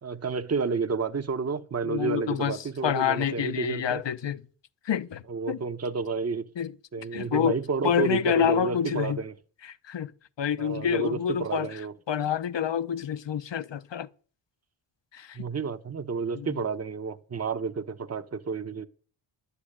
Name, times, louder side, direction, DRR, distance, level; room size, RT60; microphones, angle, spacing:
voice 1, 0.0-4.0 5.3-6.4 6.9-9.3 10.6-11.9 15.3-18.9, right 5 dB, 30° right, 0.9 m, -30 dB
voice 2, 1.8-4.4 4.8-5.6 6.6-6.7 7.1-7.6 7.8-9.2 9.6-10.1 10.4-11.8 12.1-14.1 15.1-15.5 16.3-16.6, left 9 dB, 60° left, 0.9 m, -28 dB
11.0 x 8.4 x 8.7 m
wide cardioid pair, 110°, 48 cm